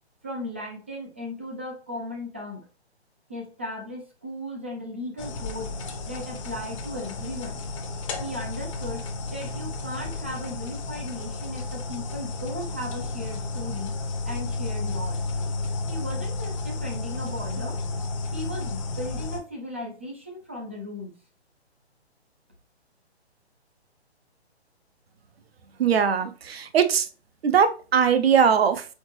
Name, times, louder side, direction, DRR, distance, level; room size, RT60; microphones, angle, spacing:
voice 1, 0.2-2.7 3.3-5.7 6.1-7.6 8.2-13.9 14.2-15.2 15.9-17.8 18.3-21.1, left 1 dB, 10° right, -1 dB, 0.3 m, -36 dB
sound 1, 5.2-19.4, left 3 dB, 30° left, 0.7 m, -32 dB
voice 2, 25.8-27.1 27.4-28.9, right 7 dB, 65° right, 9 dB, 0.8 m, -20 dB
4.3 x 3.8 x 3.1 m, 0.35 s
figure-of-eight pair, 135°, 33 cm